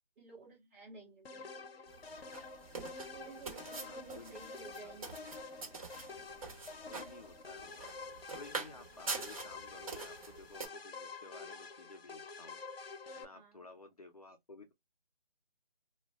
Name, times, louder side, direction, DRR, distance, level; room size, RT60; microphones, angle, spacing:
voice 1, 0.2-1.5 3.1-5.3 13.3-13.6, right 4 dB, 15° right, 0.9 m, -53 dB
sound 1, 1.2-13.2, left 4 dB, 80° left, 0.7 m, -48 dB
sound 2, 1.9-10.7, right 4 dB, 35° right, 1.2 m, -45 dB
voice 2, 3.8-5.0 6.9-8.0 8.3-12.6 13.2-14.7, left 3 dB, 40° left, 0.5 m, -55 dB
2.3 x 2.1 x 3.5 m
figure-of-eight pair, 160°, 29 cm